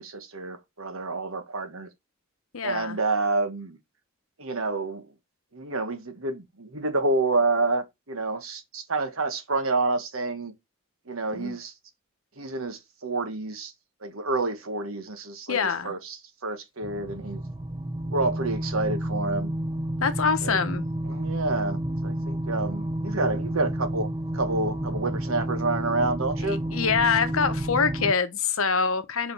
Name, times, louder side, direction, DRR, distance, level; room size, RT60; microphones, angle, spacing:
voice 1, 0.0-1.9 2.6-3.8 4.4-5.1 5.5-10.5 11.1-11.7 12.4-13.7 14.0-17.4 18.1-19.5 20.4-20.6 21.1-24.1 24.3-26.6, right 3 dB, 75° right, 1.4 m, -28 dB
voice 2, 2.5-3.0 11.3-11.6 15.5-15.9 20.0-20.9 26.4-29.3, left 5 dB, 80° left, 1.0 m, -25 dB
sound 1, 16.8-28.1, right 1 dB, 20° right, 0.6 m, -30 dB
5.1 x 5.0 x 5.4 m
head